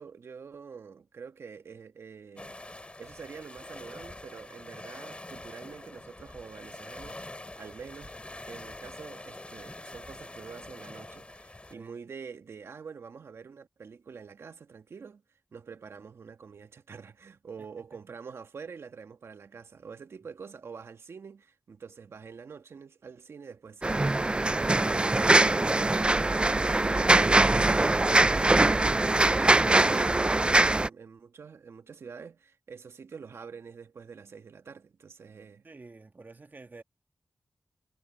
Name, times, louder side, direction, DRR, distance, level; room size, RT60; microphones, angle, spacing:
voice 1, 0.0-8.1 8.5-15.2 15.5-35.7, right 5 dB, 75° right, 1.4 m, -46 dB
sound 1, 2.4-11.7, left 2 dB, 25° left, 6.6 m, -45 dB
sound 2, 23.8-30.9, right 2 dB, 25° right, 0.4 m, -22 dB
voice 2, 35.6-36.8, right 3 dB, 45° right, 1.8 m, -49 dB
cardioid pair, 45°, 4 cm